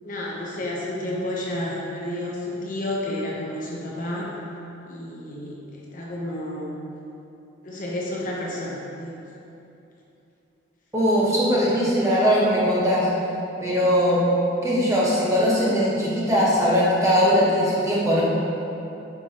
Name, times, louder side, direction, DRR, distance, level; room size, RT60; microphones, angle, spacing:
voice 1, 0.0-4.3 4.9-6.7 7.6-9.2, left 1 dB, 40° left, -4 dB, 0.8 m, -31 dB
voice 2, 10.9-13.1 13.6-14.2 14.6-18.2, equal, 15° right, -7 dB, 1.2 m, -20 dB
9.6 x 4.7 x 2.9 m, 2.8 s
head